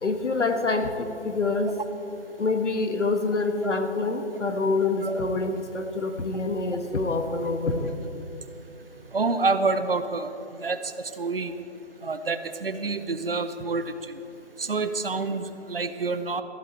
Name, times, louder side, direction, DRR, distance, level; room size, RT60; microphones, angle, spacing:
voice 1, 0.0-1.7 2.4-7.9, left 3 dB, 90° left, 7 dB, 1.4 m, -26 dB
voice 2, 9.1-10.3 10.6-10.8 11.2-11.5 12.0-14.0 14.6-16.4, right 3 dB, 55° right, 11 dB, 0.8 m, -27 dB
14.5 x 11.5 x 4.4 m, 2.9 s
figure-of-eight pair, 175°, 35 cm